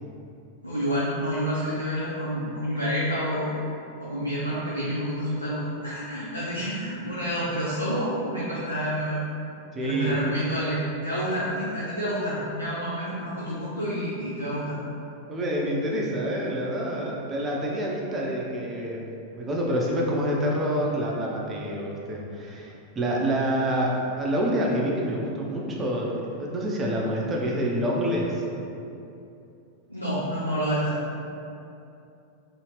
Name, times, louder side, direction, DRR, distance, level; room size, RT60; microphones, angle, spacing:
voice 1, 0.6-3.5 4.0-9.2 9.8-10.8 11.0-14.8 29.9-31.0, equal, 90° left, -9 dB, 0.5 m, -28 dB
voice 2, 9.7-10.2 15.3-19.1 19.3-26.1 26.4-28.4, equal, 20° right, -3 dB, 0.5 m, -27 dB
2.8 x 2.8 x 3.1 m, 2.7 s
figure-of-eight pair, 90°, 0 cm